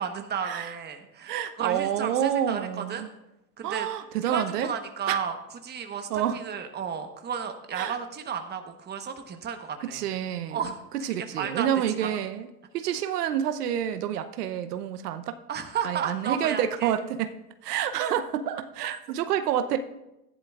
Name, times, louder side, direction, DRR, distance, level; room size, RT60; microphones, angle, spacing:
voice 1, 0.0-3.1 3.6-3.9 4.2-5.4 5.6-10.0 10.5-10.8 11.2-11.7 12.0-12.1 15.5-16.9 18.8-18.9, right 7 dB, 20° right, 6 dB, 1.1 m, -33 dB
voice 2, 1.3-3.1 3.6-4.7 5.1-5.2 6.1-6.4 7.7-7.9 9.8-10.6 11.0-12.5 12.7-15.3 15.8-17.4 17.6-19.8, right 10 dB, 85° right, 9 dB, 0.8 m, -28 dB
15.0 x 10.0 x 2.4 m, 0.91 s
supercardioid pair, 115°, 45 cm